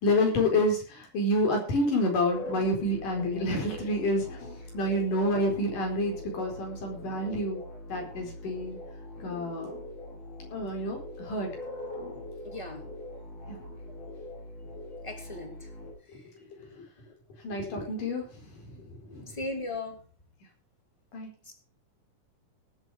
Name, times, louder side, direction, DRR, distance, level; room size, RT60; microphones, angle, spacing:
voice 1, 0.0-4.4 4.7-7.6 7.9-8.8 9.2-9.7 10.5-11.5 13.5-13.6 17.4-18.3 18.8-19.3 21.1-21.3, left 1 dB, 90° left, 2 dB, 6.2 m, -28 dB
sound 1, 2.3-15.9, left 1 dB, 50° left, 6.4 m, -42 dB
voice 2, 12.4-12.8 15.0-15.6 19.4-20.0, left 2 dB, 10° left, 4 dB, 2.7 m, -36 dB
18.5 x 8.3 x 4.9 m, 0.37 s
omnidirectional pair, 3.6 m